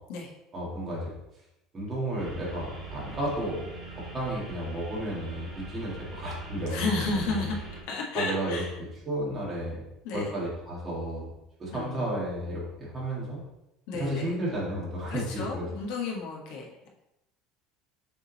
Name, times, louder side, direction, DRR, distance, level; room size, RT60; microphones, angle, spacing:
voice 1, 0.5-1.1 1.7-7.5 8.1-8.6 9.1-9.8 10.1-11.3 11.6-13.4 13.9-15.7, right 1 dB, 20° right, -6 dB, 2.1 m, -33 dB
sound 1, 2.2-7.8, right 2 dB, 5° right, 2.3 m, -42 dB
voice 2, 6.7-7.6 7.9-8.7 10.0-10.3 11.7-12.0 13.9-14.3 15.1-16.9, left 3 dB, 75° left, -1 dB, 1.4 m, -32 dB
7.0 x 3.9 x 4.1 m, 0.89 s
cardioid pair, 165°, 0 cm